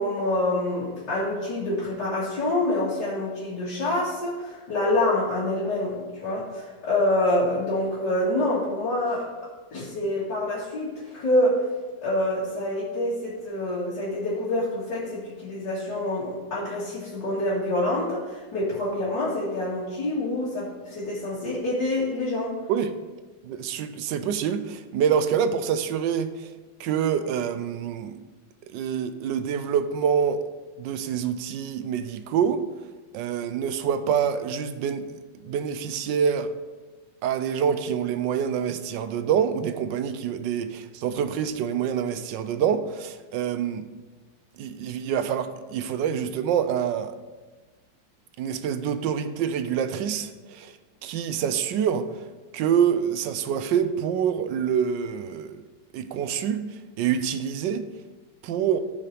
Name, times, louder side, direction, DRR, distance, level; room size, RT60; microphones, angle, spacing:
voice 1, 0.0-9.3 9.7-11.7 12.0-22.6, left 1 dB, 60° left, -10 dB, 2.7 m, -26 dB
voice 2, 23.4-26.5 26.8-28.2 28.7-30.4 30.8-32.6 33.1-36.5 37.2-43.8 44.6-47.2 48.4-50.7 51.0-52.1 52.5-55.6 55.9-56.6 57.0-57.8 58.4-58.8, right 8 dB, 75° right, 11 dB, 1.2 m, -26 dB
15.0 x 5.7 x 3.3 m, 1.3 s
omnidirectional pair, 2.1 m